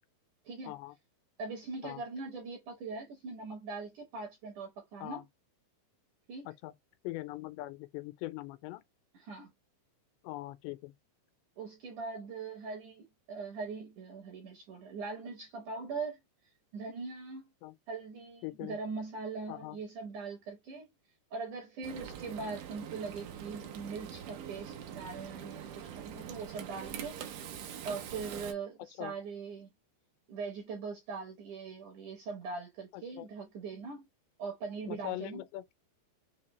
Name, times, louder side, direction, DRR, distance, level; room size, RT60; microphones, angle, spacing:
voice 1, 1.4-5.2 6.3-6.5 9.1-9.5 11.6-16.2 16.7-17.4 17.9-20.9 21.3-27.1 27.8-29.7 30.3-34.0 34.4-35.4, right 4 dB, 70° right, 1.9 m, -41 dB
voice 2, 7.0-8.8 10.2-10.9 17.6-17.8 18.4-18.8 19.5-19.8 29.0-29.1 32.9-33.3 34.9-35.6, left 17 dB, 90° left, 2.8 m, -41 dB
Frying (food), 21.8-28.5, right 9 dB, 90° right, 1.8 m, -44 dB
6.5 x 2.2 x 3.1 m
omnidirectional pair, 4.9 m